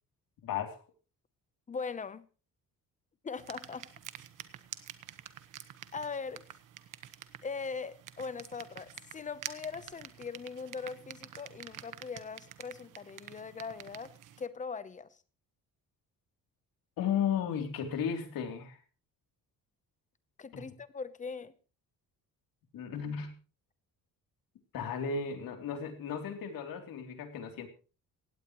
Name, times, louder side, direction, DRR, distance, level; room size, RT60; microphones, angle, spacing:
voice 1, 0.4-0.8 17.0-18.8 20.5-20.7 22.7-23.3 24.7-27.7, left 7 dB, 80° left, 3.1 m, -34 dB
voice 2, 1.7-2.2 3.2-3.9 5.9-6.4 7.4-15.2 20.4-21.5, left 5 dB, 20° left, 0.8 m, -40 dB
sound 1, 3.4-14.5, right 11 dB, 65° right, 1.3 m, -48 dB
18.0 x 17.0 x 3.1 m
cardioid pair, 175°, 34 cm